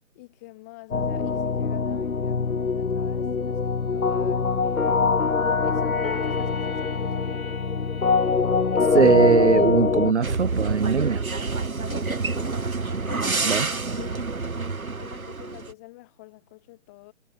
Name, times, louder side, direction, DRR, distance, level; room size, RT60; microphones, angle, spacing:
voice 1, 0.1-5.3 5.6-7.3 11.8-12.6 13.1-14.4 15.0-17.1, left 23 dB, 10° left, 4.1 m, -46 dB
sound 1, 0.9-10.1, left 5 dB, 85° left, 2.0 m, -23 dB
sound 2, 6.0-12.2 12.8-13.0 13.3-14.0 15.0-15.1, left 5 dB, 45° left, 6.0 m, -45 dB
voice 2, 8.9-11.3 13.4-13.7, right 6 dB, 55° right, 1.1 m, -20 dB
sound 3, 10.2-15.7, right 4 dB, 85° right, 5.4 m, -28 dB
hypercardioid pair, 175°, 41 cm